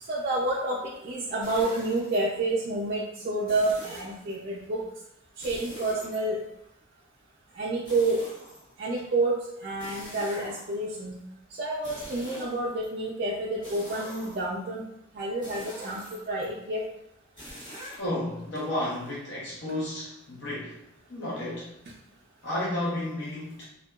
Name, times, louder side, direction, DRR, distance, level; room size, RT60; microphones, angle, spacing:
voice 1, 0.1-0.8 1.0-4.8 5.4-6.4 7.6-8.2 8.8-11.1 11.6-14.8 15.2-16.0 16.3-16.8, right 2 dB, 45° right, -5 dB, 0.3 m, -29 dB
sound 1, 1.4-2.2 3.5-4.3 5.4-6.6 7.9-9.0 9.8-10.9 11.7-12.9 13.6-14.6 15.4-16.4 17.4-18.0, equal, 25° left, 1.3 m, -44 dB
voice 2, 18.0-20.8 21.1-21.7 22.4-23.6, left 1 dB, 60° left, -6 dB, 0.6 m, -32 dB
2.7 x 2.1 x 2.3 m, 0.81 s
head